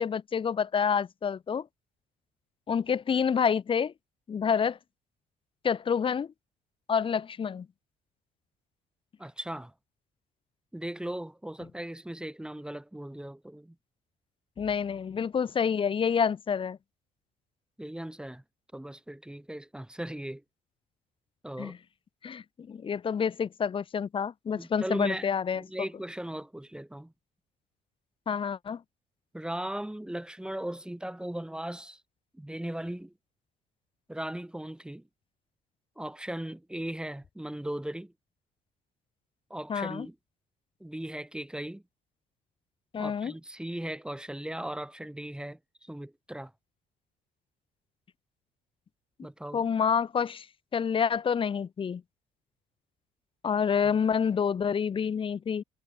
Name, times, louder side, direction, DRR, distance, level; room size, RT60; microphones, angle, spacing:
voice 1, 0.0-1.7 2.7-3.9 4.3-4.8 5.6-6.3 6.9-7.7 14.6-16.8 21.6-21.8 22.2-25.6 28.3-28.8 39.7-40.1 42.9-43.3 49.5-50.5 50.7-52.0 53.4-55.6, left 7 dB, 30° left, 0.7 m, -28 dB
voice 2, 9.2-9.7 10.7-13.7 17.8-18.4 18.7-20.4 21.4-21.8 24.5-25.3 25.5-27.1 29.3-32.0 32.3-33.1 34.1-35.0 36.0-38.1 39.5-40.1 40.8-41.8 43.0-46.5 49.2-49.6, right 1 dB, 5° right, 3.2 m, -38 dB
cardioid pair, 110°, 17 cm